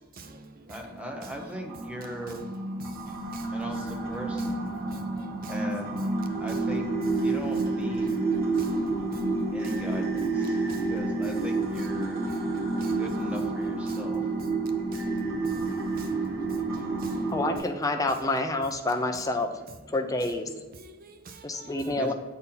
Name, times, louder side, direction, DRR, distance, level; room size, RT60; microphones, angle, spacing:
voice 1, 0.0-0.9 2.8-3.5 4.9-5.6 6.5-6.6 8.0-9.9 10.7-10.9 11.8-13.0 13.9-14.1 14.4-14.5 14.9-17.3 20.7-21.9, right 3 dB, 45° right, 0.6 m, -49 dB
voice 2, 0.7-2.5 3.5-4.8 5.5-6.9 7.2-8.3 9.5-10.5 10.9-12.2 13.0-14.2 21.9-22.1, equal, 5° right, 0.9 m, -39 dB
sound 1, 0.8-17.6, right 3 dB, 70° right, 2.0 m, -29 dB
voice 3, 17.3-19.5 19.9-20.5 21.4-22.1, left 2 dB, 15° left, 0.6 m, -28 dB
8.2 x 4.3 x 3.8 m
head